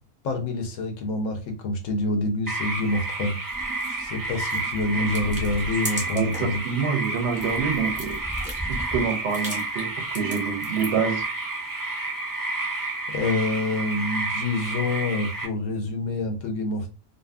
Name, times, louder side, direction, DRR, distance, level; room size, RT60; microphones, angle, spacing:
voice 1, 0.2-3.3 3.9-6.6 13.1-16.9, left 2 dB, 70° left, 4 dB, 0.9 m, -27 dB
sound 1, 2.5-15.5, right 2 dB, 25° right, 0.4 m, -30 dB
sound 2, 3.5-6.6 6.9-11.1, equal, 5° right, 0.9 m, -37 dB
voice 2, 6.1-8.2 8.7-11.2, right 6 dB, 65° right, 5 dB, 0.8 m, -27 dB
2.6 x 2.5 x 2.2 m, 0.30 s
omnidirectional pair, 1.4 m